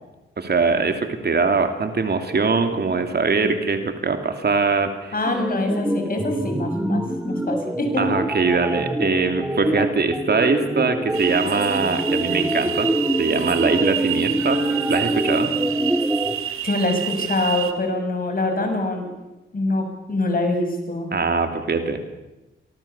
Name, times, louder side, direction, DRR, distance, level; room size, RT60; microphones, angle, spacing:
voice 1, 0.4-5.1 8.0-14.6 14.9-15.5 21.1-22.2, right 4 dB, 50° right, 7 dB, 2.9 m, -22 dB
voice 2, 5.1-8.0 16.6-19.1 19.5-21.1, left 2 dB, 45° left, 5 dB, 6.8 m, -24 dB
sound 1, 5.2-16.4, right 1 dB, 10° right, 1.5 m, -25 dB
sound 2, 11.1-17.7, right 11 dB, 80° right, 2.0 m, -29 dB
26.5 x 19.0 x 7.2 m, 1.0 s
cardioid pair, 70°, 21 cm